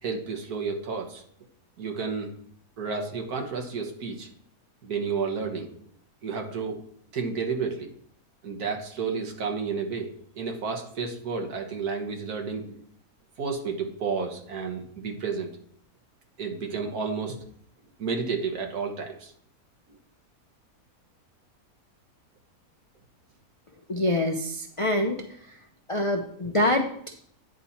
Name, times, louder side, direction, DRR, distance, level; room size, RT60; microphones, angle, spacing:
voice 1, 0.0-1.2 1.8-2.3 2.8-4.3 4.8-5.9 6.2-6.8 7.1-7.9 8.4-12.8 13.4-15.5 16.4-17.4 18.0-19.3, right 5 dB, 80° right, 2 dB, 1.8 m, -31 dB
voice 2, 23.9-25.2 25.9-27.1, left 1 dB, 50° left, 3 dB, 0.4 m, -25 dB
9.7 x 4.1 x 5.7 m, 0.63 s
omnidirectional pair, 1.6 m